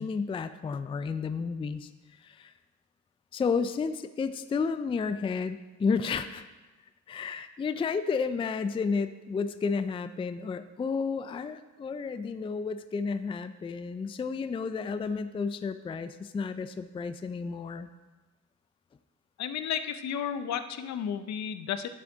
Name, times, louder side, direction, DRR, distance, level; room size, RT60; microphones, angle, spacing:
voice 1, 0.0-1.9 2.2-2.5 3.3-6.4 7.1-17.9, left 5 dB, 20° left, 11 dB, 0.3 m, -31 dB
voice 2, 19.4-21.9, left 8 dB, 65° left, 10 dB, 0.6 m, -33 dB
11.0 x 6.0 x 3.9 m, 1.2 s
cardioid pair, 90°, 30 cm